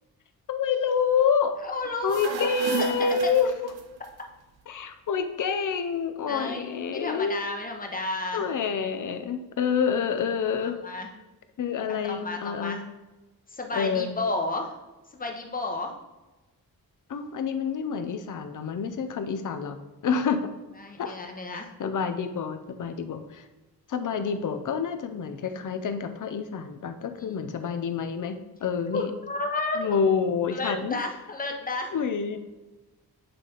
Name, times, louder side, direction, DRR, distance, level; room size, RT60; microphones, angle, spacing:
voice 1, 0.5-1.6 2.0-3.5 4.7-7.4 8.3-10.8 11.6-12.8 13.7-14.2 17.1-19.8 20.0-20.5 21.0-21.2 21.5-23.4 23.9-29.1 29.8-31.0 31.9-32.4, left 6 dB, 55° left, 8 dB, 0.6 m, -27 dB
voice 2, 1.6-2.5 2.8-3.2 6.3-8.5 10.4-11.1 11.9-12.8 13.5-14.7 15.1-15.9 20.8-21.7 27.2-27.5 28.9-30.0 30.5-31.9, left 2 dB, 20° left, 2 dB, 0.8 m, -32 dB
sound 1, 1.9-4.1, right 6 dB, 85° right, 0.7 m, -34 dB
7.6 x 3.2 x 3.9 m, 1.1 s
wide cardioid pair, 145°, 38 cm